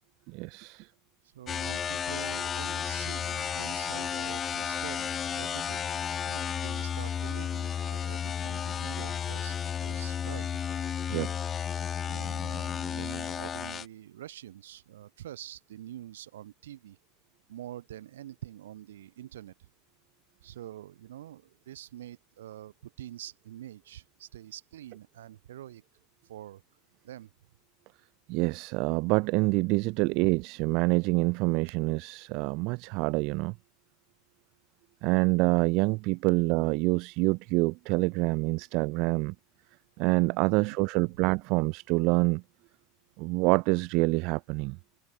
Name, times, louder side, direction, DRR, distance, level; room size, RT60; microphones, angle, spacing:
voice 1, 0.3-0.9 11.1-11.3 28.3-33.5 35.0-39.3 40.0-42.4 43.2-44.8, right 27 dB, 55° right, 0.5 m, -26 dB
voice 2, 1.2-5.9 6.2-10.6 12.0-17.0 17.5-19.5 20.4-25.8 26.2-26.6 27.0-27.3 30.0-30.2 40.4-41.1, right 12 dB, 75° right, 3.4 m, -46 dB
sound 1, 1.5-13.9, left 8 dB, 30° left, 1.4 m, -33 dB
hypercardioid pair, 80°, 0 cm